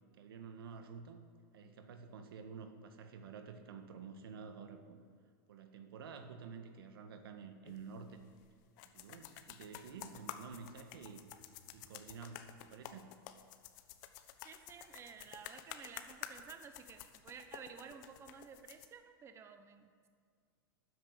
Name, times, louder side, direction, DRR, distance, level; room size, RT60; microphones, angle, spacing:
voice 1, 0.1-1.2 1.5-5.0 5.5-8.2 8.8-11.2 11.7-13.2, right 5 dB, 90° right, 7 dB, 1.6 m, -50 dB
sound 1, 7.6-18.9, left 11 dB, 55° left, 1.1 m, -51 dB
voice 2, 14.4-20.1, right 6 dB, 20° right, 7 dB, 1.0 m, -53 dB
13.0 x 9.7 x 8.4 m, 2.1 s
supercardioid pair, 140°, 12 cm